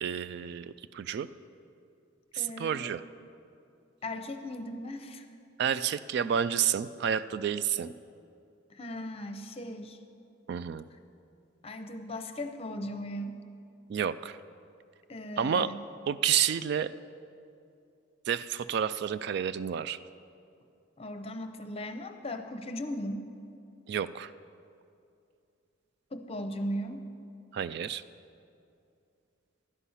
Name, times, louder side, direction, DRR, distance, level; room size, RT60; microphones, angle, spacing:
voice 1, 0.0-1.3 2.3-3.0 5.6-7.9 10.5-10.8 13.9-14.4 15.4-15.7 16.1-16.9 18.3-20.0 23.9-24.3 27.5-28.0, right 8 dB, 55° right, 14 dB, 0.3 m, -30 dB
voice 2, 2.3-3.0 4.0-5.3 8.7-10.0 11.6-13.4 15.1-15.8 21.0-23.3 26.1-27.0, left 1 dB, 30° left, 7 dB, 0.7 m, -37 dB
12.0 x 9.9 x 5.6 m, 2.5 s
head